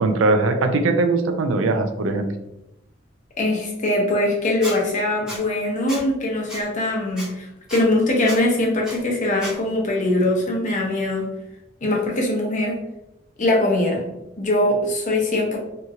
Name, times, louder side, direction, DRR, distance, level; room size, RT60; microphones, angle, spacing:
voice 1, 0.0-2.3, right 3 dB, 90° right, 7 dB, 0.4 m, -20 dB
voice 2, 3.4-11.3 11.8-12.7 13.4-14.1 14.4-15.6, left 1 dB, 40° left, -1 dB, 0.7 m, -22 dB
Squeak, 4.6-4.8 5.3-5.4 5.9-6.0 6.5-6.6 7.2-7.3 7.7-7.8 8.2-8.4 8.8-9.0 9.4-9.5, right 1 dB, 5° right, 0.9 m, -32 dB
2.8 x 2.7 x 2.4 m, 0.87 s
head